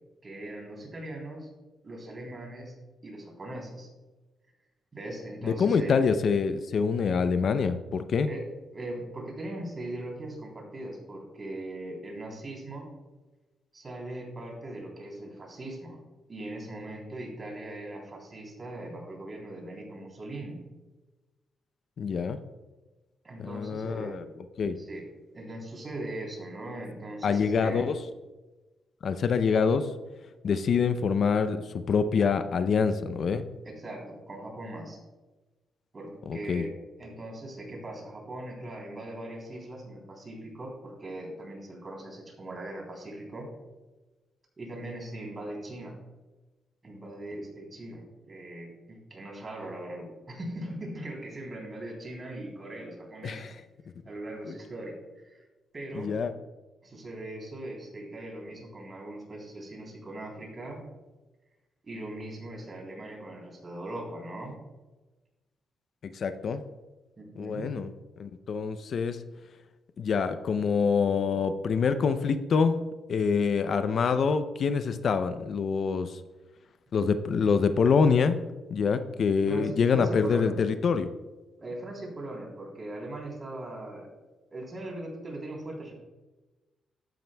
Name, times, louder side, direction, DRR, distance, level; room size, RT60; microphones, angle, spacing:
voice 1, 0.2-1.5 1.8-2.7 3.0-3.9 4.9-6.0 8.3-8.4 8.7-12.9 13.7-16.0 16.3-20.6 23.2-24.2 24.7-25.0 25.3-27.9 33.6-35.0 35.9-43.5 44.6-46.0 46.8-53.5 54.0-55.5 55.7-56.1 56.8-60.8 61.8-64.6 67.2-67.7 79.5-80.6 81.6-84.1 84.5-85.9, right 1 dB, 35° right, 0 dB, 3.3 m, -40 dB
voice 2, 5.4-8.3 22.0-22.4 23.4-24.2 24.6-24.8 27.2-27.9 29.0-29.9 30.4-33.4 36.3-36.7 53.2-53.5 54.5-54.6 55.9-56.3 66.0-66.6 67.4-67.9 68.2-69.2 70.0-72.8 73.1-76.2 76.9-78.4 78.7-81.1, left 5 dB, 60° left, 11 dB, 0.5 m, -26 dB
12.5 x 9.3 x 2.2 m, 1.2 s
cardioid pair, 85°, 0 cm